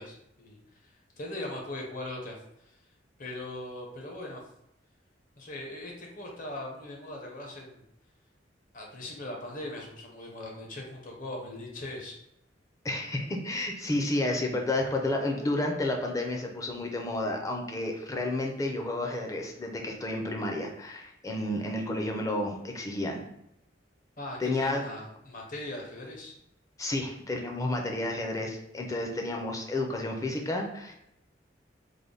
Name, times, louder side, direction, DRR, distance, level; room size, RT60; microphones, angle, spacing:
voice 1, 0.0-2.8 3.2-4.4 5.4-7.8 8.7-12.2 24.2-26.3, left 1 dB, 45° left, 0 dB, 0.8 m, -40 dB
voice 2, 12.8-23.2 24.4-24.8 26.8-30.9, left 2 dB, 20° left, 2 dB, 0.5 m, -31 dB
3.4 x 2.1 x 3.8 m, 0.79 s
head